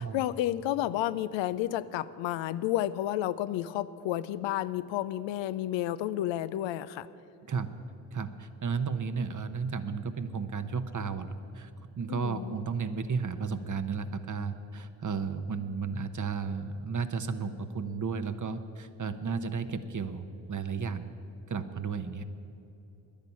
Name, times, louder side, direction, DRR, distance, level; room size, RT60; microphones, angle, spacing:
voice 1, 0.0-7.1 12.1-12.5, left 13 dB, 75° left, 15 dB, 0.6 m, -31 dB
voice 2, 8.1-11.3 11.5-11.7 12.0-21.1 21.5-22.2, right 5 dB, 40° right, 10 dB, 1.0 m, -33 dB
10.5 x 10.5 x 8.5 m, 2.8 s
hypercardioid pair, 40°, 46 cm